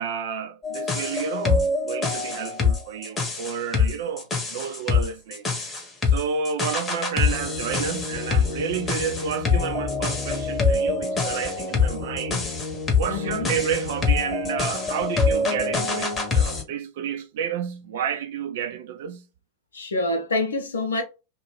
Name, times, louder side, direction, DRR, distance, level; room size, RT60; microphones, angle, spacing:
voice 1, 0.0-5.5 5.7-12.5 13.0-19.3, right 7 dB, 55° right, 0.5 m, -30 dB
sound 1, 0.6-16.6, left 4 dB, 15° left, 0.9 m, -25 dB
voice 2, 13.1-13.5 19.7-21.0, left 2 dB, 70° left, 0.6 m, -26 dB
2.5 x 2.2 x 3.1 m
figure-of-eight pair, 90°, 0 cm